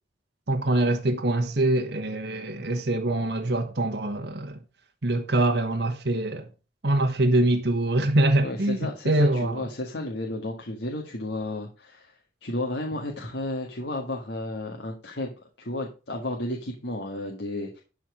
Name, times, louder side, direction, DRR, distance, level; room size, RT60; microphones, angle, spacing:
voice 1, 0.5-4.6 5.0-6.5 6.8-8.8 9.0-9.7, right 1 dB, 70° right, 1.3 m, -24 dB
voice 2, 8.4-17.8, left 1 dB, 75° left, 1.7 m, -33 dB
12.0 x 4.5 x 6.0 m
head